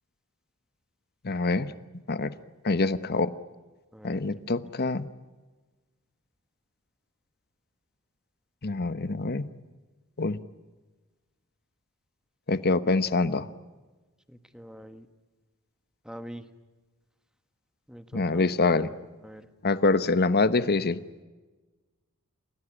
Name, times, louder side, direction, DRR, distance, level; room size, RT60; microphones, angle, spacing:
voice 1, 1.2-1.7 2.1-2.3 2.6-3.3 4.0-5.1 8.6-9.5 10.2-10.4 12.5-13.5 18.1-18.9 19.6-21.0, left 3 dB, 45° left, 14 dB, 1.0 m, -25 dB
voice 2, 3.9-4.5 14.3-15.1 16.0-16.5 17.9-19.0 19.2-19.5, equal, 5° right, 9 dB, 1.4 m, -45 dB
29.5 x 17.0 x 9.9 m, 1.3 s
head